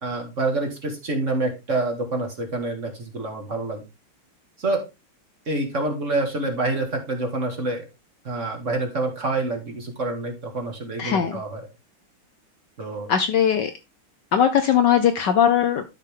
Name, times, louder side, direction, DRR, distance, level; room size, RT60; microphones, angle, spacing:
voice 1, 0.0-3.8 4.6-4.8 5.5-7.9 8.2-11.6 12.8-13.1, right 2 dB, 35° right, 3 dB, 2.0 m, -27 dB
voice 2, 11.0-11.4 13.1-13.7 14.3-15.8, left 8 dB, 65° left, 8 dB, 1.2 m, -19 dB
12.0 x 5.1 x 3.5 m, 0.25 s
omnidirectional pair, 2.4 m